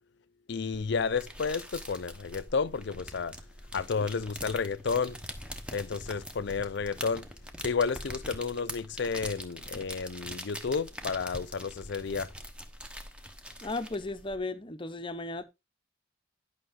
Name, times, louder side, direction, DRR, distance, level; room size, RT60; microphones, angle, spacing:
voice 1, 0.5-3.3 3.7-5.1 5.7-7.2 7.6-12.3, left 5 dB, 55° left, 0.5 m, -31 dB
sound 1, 0.7-14.4, equal, 5° right, 1.0 m, -43 dB
voice 2, 13.6-15.4, left 2 dB, 25° left, 0.7 m, -35 dB
11.5 x 5.9 x 3.7 m
head